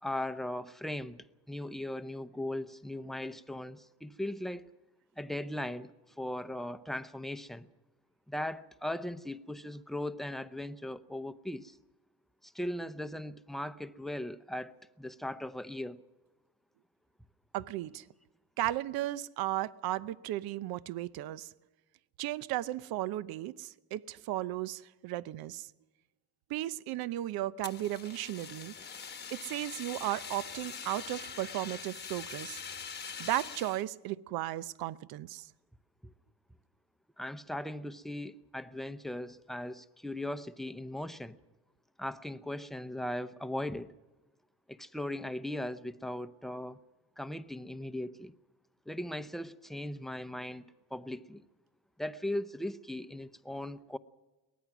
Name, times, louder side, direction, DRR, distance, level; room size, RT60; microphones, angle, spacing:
voice 1, 0.0-4.7 5.2-5.9 6.2-7.7 8.3-11.8 12.4-16.0 37.2-41.4 42.0-43.9 44.7-46.8 47.2-48.3 48.9-50.6 50.9-51.4 52.0-54.0, left 1 dB, ahead, 0.7 m, -38 dB
voice 2, 17.5-18.0 18.6-21.5 22.2-25.7 26.5-28.7 29.3-32.6 33.2-35.5, right 14 dB, 75° right, 0.7 m, -35 dB
Fire, 27.6-33.8, left 6 dB, 25° left, 1.1 m, -43 dB
23.5 x 19.0 x 6.1 m
cardioid pair, 110°, 37 cm